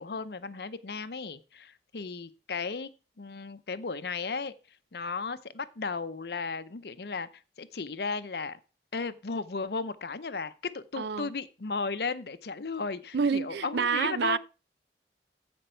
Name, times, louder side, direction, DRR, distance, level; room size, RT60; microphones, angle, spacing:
voice 1, 0.0-2.9 3.2-4.5 4.9-8.6 8.9-14.4, left 4 dB, 65° left, 0.7 m, -35 dB
voice 2, 11.0-11.3 13.1-14.4, right 6 dB, 75° right, 0.5 m, -28 dB
14.5 x 5.3 x 4.5 m
head